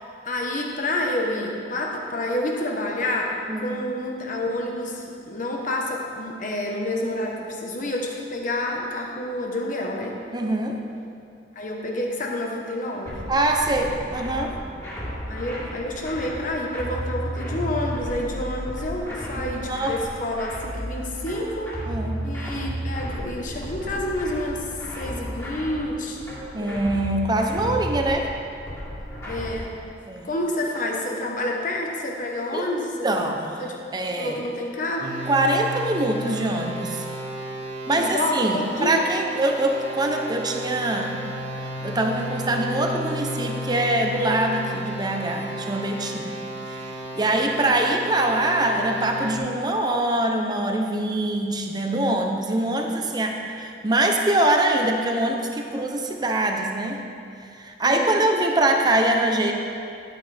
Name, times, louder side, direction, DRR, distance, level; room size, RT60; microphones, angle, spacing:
voice 1, 0.2-10.2 11.5-13.2 15.3-21.8 22.2-26.2 26.6-26.8 29.3-29.8 30.2-33.0 33.6-33.7 34.2-35.1 37.9-39.0 52.8-53.0 57.8-58.3, left 1 dB, 50° left, 0 dB, 1.2 m, -29 dB
voice 2, 10.3-10.8 13.3-14.6 19.4-20.0 21.9-22.2 26.5-28.3 30.0-30.3 32.5-32.7 33.0-33.6 33.9-34.4 35.3-37.2 37.9-41.2 41.8-46.4 46.6-46.8 47.1-57.0 57.4-59.5, right 1 dB, 25° right, 3 dB, 0.8 m, -24 dB
ade crushed, 13.1-29.7, equal, 15° left, 2.4 m, -33 dB
sound 1, 35.0-49.4, equal, 65° right, 1.9 m, -33 dB
11.0 x 8.9 x 3.5 m, 2.5 s
head